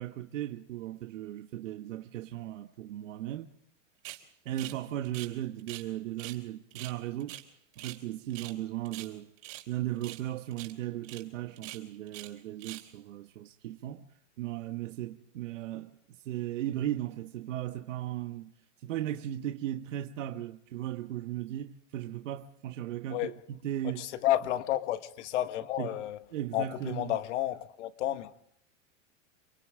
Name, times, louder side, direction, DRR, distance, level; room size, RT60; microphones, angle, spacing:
voice 1, 0.0-3.5 4.4-7.4 7.8-9.3 9.7-14.1 14.4-18.5 18.8-24.1 25.8-25.9 26.3-27.2, right 13 dB, 75° right, 1.4 m, -37 dB
sound 1, 4.0-4.2 4.6-4.8 5.0-5.9 6.2-6.4 6.7-8.0 8.3-8.6 8.8-9.7 10.0-10.3 10.5-10.7 11.0-11.2 11.6-12.3 12.6-12.9, right 18 dB, 55° right, 3.8 m, -44 dB
voice 2, 24.0-26.2 26.5-28.3, left 13 dB, 65° left, 1.7 m, -31 dB
29.5 x 24.5 x 3.8 m
supercardioid pair, 140°, 38 cm